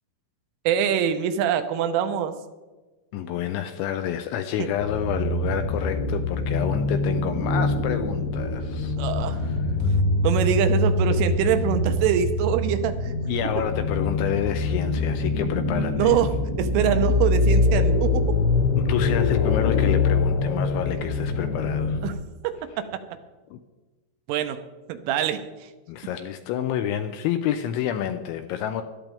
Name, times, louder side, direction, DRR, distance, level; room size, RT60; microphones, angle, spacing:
voice 1, 0.7-2.3 4.6-4.7 9.0-9.5 9.8-10.0 10.2-13.1 16.0-18.4 22.0-22.1 22.4-23.2 24.3-24.6 24.9-25.7, right 9 dB, 85° right, 8 dB, 3.3 m, -24 dB
voice 2, 3.1-8.9 9.4-9.6 13.3-16.1 18.8-22.0 23.5-23.6 25.9-28.8, left 10 dB, 85° left, 8 dB, 2.7 m, -29 dB
sound 1, 4.8-22.1, left 3 dB, 65° left, 2.7 m, -24 dB
17.0 x 13.5 x 3.5 m, 1.2 s
omnidirectional pair, 5.9 m